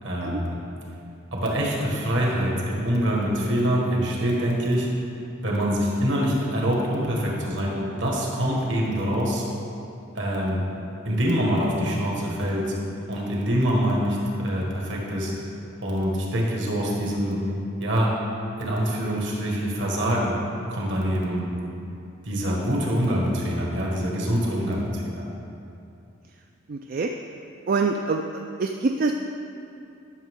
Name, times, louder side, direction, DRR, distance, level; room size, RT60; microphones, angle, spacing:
voice 1, 0.0-0.6 1.3-4.9 5.4-9.5 10.1-10.6 11.0-12.8 13.1-15.3 15.8-17.4 17.8-18.1 18.6-20.4 20.7-21.5 22.2-25.3, equal, 65° right, -3 dB, 1.7 m, -25 dB
voice 2, 26.7-27.1 27.7-28.2 28.6-29.1, right 4 dB, 45° right, 3 dB, 0.3 m, -24 dB
12.0 x 6.5 x 3.6 m, 2.7 s
head